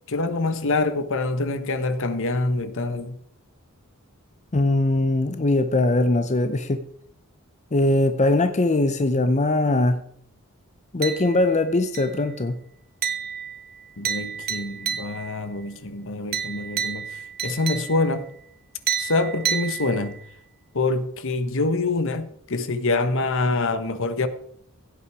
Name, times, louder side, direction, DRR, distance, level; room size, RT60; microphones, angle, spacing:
voice 1, 0.1-3.2 14.0-17.1 17.4-18.3 19.0-20.2 20.7-24.3, left 3 dB, 60° left, 1.2 m, -25 dB
voice 2, 4.5-6.8 7.7-10.0 10.9-12.6, left 2 dB, 35° left, 0.7 m, -21 dB
sound 1, 11.0-11.6 11.9-12.4 13.0-15.4 16.3-18.2 18.9-20.3, right 8 dB, 45° right, 1.1 m, -30 dB
16.5 x 8.7 x 4.8 m
head